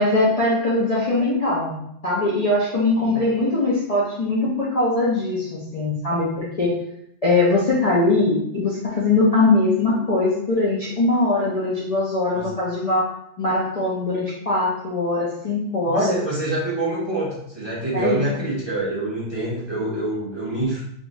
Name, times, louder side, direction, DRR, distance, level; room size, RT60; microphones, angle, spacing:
voice 1, 0.0-1.8 2.0-6.7 7.2-13.1 13.4-16.2 17.9-18.2, left 2 dB, 40° left, -6 dB, 0.6 m, -21 dB
voice 2, 15.8-20.8, right 2 dB, 25° right, -8 dB, 1.1 m, -26 dB
3.5 x 2.9 x 2.6 m, 0.74 s
omnidirectional pair, 1.2 m